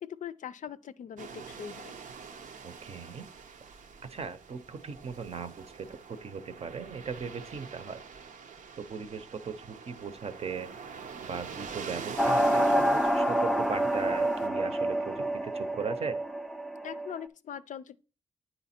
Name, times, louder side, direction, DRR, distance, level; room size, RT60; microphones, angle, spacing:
voice 1, 0.0-2.0 16.8-18.0, left 9 dB, 75° left, 0.4 m, -41 dB
sound 1, 1.2-14.5, right 6 dB, 85° right, 0.7 m, -45 dB
voice 2, 2.6-3.3 4.1-8.0 8.8-10.7 11.2-16.1, right 5 dB, 50° right, 0.6 m, -38 dB
sound 2, 12.2-17.2, right 1 dB, ahead, 0.4 m, -27 dB
9.1 x 4.0 x 4.3 m
wide cardioid pair, 140°, 13 cm